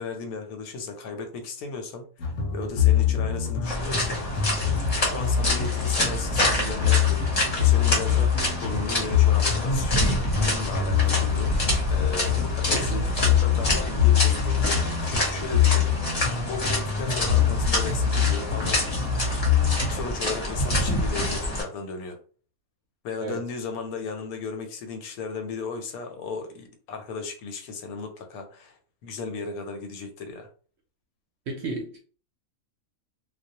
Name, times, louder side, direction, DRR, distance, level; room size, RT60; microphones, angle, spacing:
voice 1, 0.0-2.1 2.5-4.2 5.0-15.9 16.4-18.8 19.9-22.2 23.0-30.5, left 4 dB, 85° left, 1.0 m, -35 dB
sound 1, 2.2-20.1, left 8 dB, 65° left, 0.8 m, -24 dB
sound 2, 3.6-21.6, left 1 dB, 35° left, 0.7 m, -27 dB
voice 2, 31.5-32.0, right 3 dB, 65° right, 0.7 m, -32 dB
2.3 x 2.1 x 2.7 m
omnidirectional pair, 1.5 m